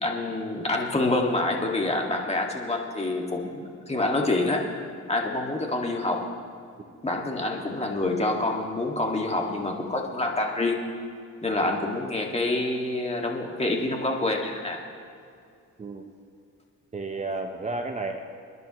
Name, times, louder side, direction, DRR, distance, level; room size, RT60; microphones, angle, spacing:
voice 1, 0.0-4.7 5.1-6.3 7.0-10.8 11.4-14.8, left 2 dB, 20° left, 1 dB, 2.0 m, -27 dB
voice 2, 15.8-16.1 16.9-18.2, right 3 dB, 25° right, 4 dB, 0.9 m, -32 dB
27.5 x 10.5 x 3.1 m, 2.4 s
cardioid pair, 90°, 30 cm